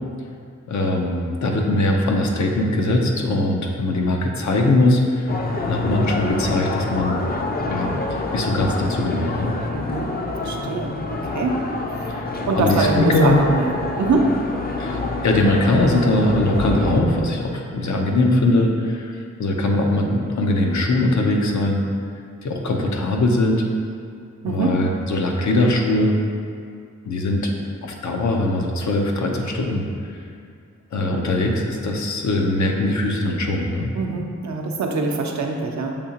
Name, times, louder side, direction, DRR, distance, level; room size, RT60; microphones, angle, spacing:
voice 1, 0.7-5.3 5.7-7.2 7.7-9.5 12.1-13.4 14.8-21.8 22.4-23.6 24.5-26.1 27.0-27.6 27.8-30.2 30.9-33.9, left 2 dB, 70° left, 1 dB, 0.6 m, -21 dB
sound 1, 5.3-17.0, left 2 dB, 30° left, 0.5 m, -26 dB
voice 2, 9.7-10.1 10.4-12.2 12.5-14.3 24.4-24.8 34.0-36.0, right 3 dB, 70° right, 2 dB, 0.6 m, -24 dB
6.7 x 2.8 x 2.8 m, 2.3 s
wide cardioid pair, 75°, 30 cm